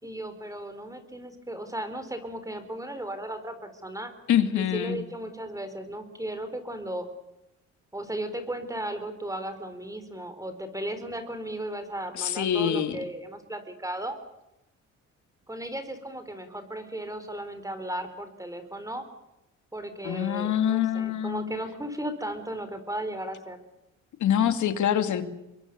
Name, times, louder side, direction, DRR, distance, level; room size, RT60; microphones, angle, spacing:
voice 1, 0.0-4.1 4.6-7.1 7.9-14.2 15.5-19.0 19.7-23.6, right 1 dB, 10° right, 9 dB, 4.1 m, -35 dB
voice 2, 4.3-5.0 12.1-13.0 20.0-21.5 24.2-25.2, left 9 dB, 75° left, 9 dB, 2.5 m, -25 dB
26.0 x 22.5 x 6.8 m, 0.92 s
cardioid pair, 90°, 30 cm